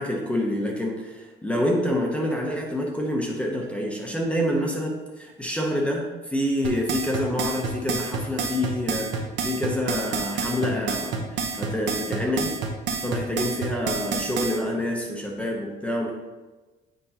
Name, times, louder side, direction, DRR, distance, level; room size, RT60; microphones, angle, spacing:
voice 1, 0.0-12.5 13.0-16.1, left 1 dB, 5° left, 0 dB, 0.7 m, -27 dB
sound 1, 6.6-14.6, right 5 dB, 60° right, 0.9 m, -28 dB
7.8 x 5.1 x 2.8 m, 1.2 s
cardioid pair, 170°, 21 cm